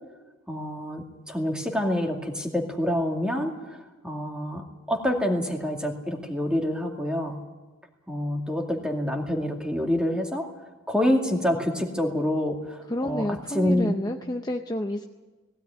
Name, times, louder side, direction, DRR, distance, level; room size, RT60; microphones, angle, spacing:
voice 1, 0.5-3.8 4.0-7.4 8.1-10.5 10.9-13.9, left 1 dB, 5° right, 2 dB, 2.3 m, -27 dB
voice 2, 12.9-15.0, left 1 dB, 20° left, 4 dB, 0.7 m, -29 dB
19.5 x 16.5 x 9.5 m, 1.2 s
head